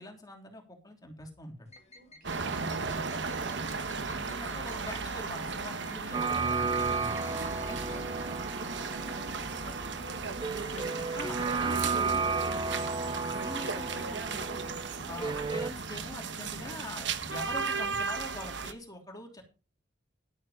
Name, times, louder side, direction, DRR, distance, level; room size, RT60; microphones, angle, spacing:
voice 1, 0.0-1.7 4.1-7.2 7.7-8.0 11.1-12.2 13.2-14.6 15.0-19.4, left 1 dB, 20° left, 2 dB, 3.0 m, -44 dB
sound 1, 1.7-11.0, left 1 dB, 35° left, 1.9 m, -54 dB
voice 2, 1.9-3.3 7.2-11.1 11.4-12.6 14.9-15.1, right 1 dB, 50° right, 4 dB, 4.3 m, -51 dB
sound 2, 2.2-18.7, right 4 dB, 65° right, 1.3 m, -36 dB
sound 3, 6.1-15.7, right 4 dB, 25° right, 0.6 m, -33 dB
12.0 x 8.7 x 5.0 m, 0.32 s
head